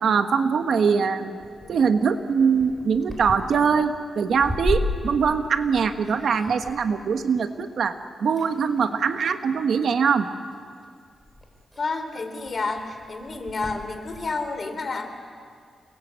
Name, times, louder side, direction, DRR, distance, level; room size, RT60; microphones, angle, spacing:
voice 1, 0.0-1.4 1.7-10.3, right 6 dB, 65° right, 8 dB, 1.4 m, -22 dB
sound 1, 1.1-8.0 8.3-9.0 9.9-10.3 10.8-10.9 11.1-14.3, left 1 dB, 5° right, 4.2 m, -35 dB
voice 2, 11.8-15.1, left 3 dB, 40° left, 7 dB, 3.3 m, -30 dB
29.0 x 21.0 x 8.3 m, 2.1 s
wide cardioid pair, 130°, 0 cm